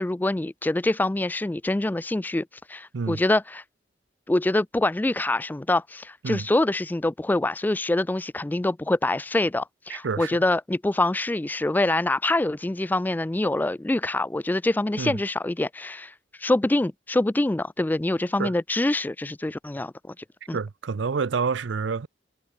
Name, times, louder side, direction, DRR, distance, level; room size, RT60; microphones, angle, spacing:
voice 1, 0.0-3.6 4.3-16.1 16.4-20.1 20.5-20.6, left 2 dB, 10° left, 0.3 m, -25 dB
voice 2, 9.9-10.4 15.0-15.2 18.4-18.5 20.5-22.1, right 5 dB, 85° right, 0.5 m, -28 dB
head